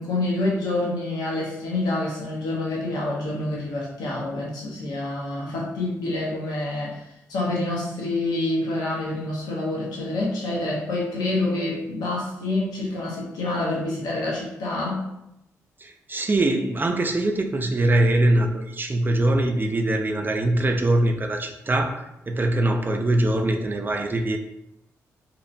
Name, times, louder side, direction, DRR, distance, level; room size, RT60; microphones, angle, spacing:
voice 1, 0.0-7.0 7.3-15.1, left 2 dB, 80° left, -4 dB, 0.7 m, -27 dB
voice 2, 15.8-24.4, right 1 dB, 30° right, 5 dB, 0.4 m, -22 dB
2.8 x 2.0 x 2.6 m, 0.85 s
supercardioid pair, 50°, 7 cm